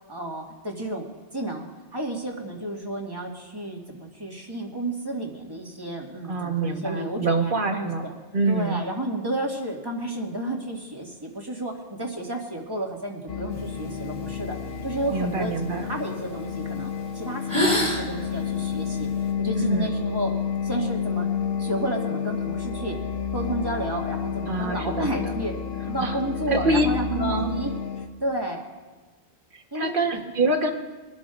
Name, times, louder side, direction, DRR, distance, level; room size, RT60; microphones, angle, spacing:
voice 1, 0.1-1.1 1.3-1.7 1.9-8.1 8.5-11.7 12.0-14.6 14.8-15.5 15.9-19.1 19.4-20.3 20.6-21.3 21.6-23.0 23.3-25.5 25.9-28.6 29.7-30.2, right 1 dB, 20° right, 0 dB, 2.0 m, -31 dB
voice 2, 6.3-8.0 8.3-8.8 15.1-15.9 19.5-19.9 24.5-25.3 26.0-26.1 26.5-27.5 29.5-30.7, right 2 dB, 50° right, 4 dB, 1.5 m, -25 dB
sound 1, 13.3-28.1, left 7 dB, 60° left, 1.1 m, -30 dB
sound 2, 13.5-16.2 16.8-17.0 17.3-19.3, left 1 dB, 15° left, 3.1 m, -30 dB
24.0 x 12.5 x 2.5 m, 1.3 s
omnidirectional pair, 1.2 m